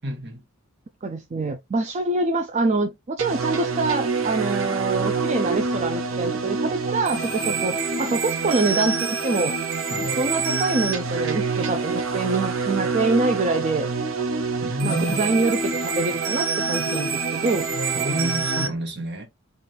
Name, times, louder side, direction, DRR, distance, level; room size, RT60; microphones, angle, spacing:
voice 1, 0.0-0.4 9.9-10.2 14.6-15.2 17.9-19.3, right 1 dB, 55° right, 1.3 m, -29 dB
voice 2, 1.0-9.5 10.2-13.9 14.8-17.7, right 3 dB, 35° right, 0.4 m, -25 dB
sound 1, 3.2-18.7, right 4 dB, 70° right, 0.8 m, -26 dB
4.2 x 2.5 x 3.2 m
head